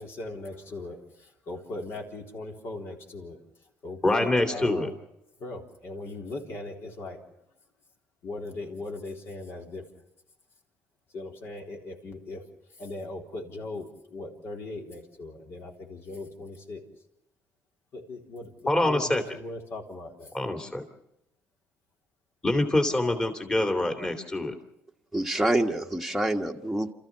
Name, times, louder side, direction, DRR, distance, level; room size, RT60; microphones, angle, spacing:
voice 1, 0.0-3.4 3.8-4.9 5.4-7.2 8.2-9.8 11.1-12.4 12.8-16.8 17.9-18.5 18.8-20.3, left 2 dB, 55° left, 2 dB, 3.8 m, -39 dB
voice 2, 4.0-4.9 18.7-19.2 20.3-20.8 22.4-24.5, left 1 dB, 15° left, 5 dB, 2.6 m, -25 dB
voice 3, 25.1-26.9, right 1 dB, ahead, 1 dB, 1.4 m, -26 dB
28.5 x 14.0 x 7.2 m, 0.83 s
cardioid pair, 100°, 5 cm